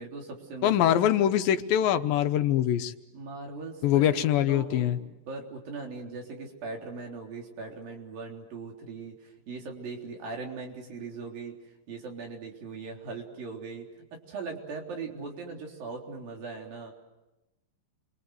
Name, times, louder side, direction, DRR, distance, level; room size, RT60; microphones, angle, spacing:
voice 1, 0.0-0.7 3.1-11.6 11.9-16.9, right 4 dB, 80° right, 1 dB, 5.4 m, -40 dB
voice 2, 0.6-2.9 3.8-5.0, left 11 dB, 85° left, 9 dB, 2.8 m, -23 dB
29.5 x 24.0 x 7.8 m, 1.0 s
omnidirectional pair, 4.0 m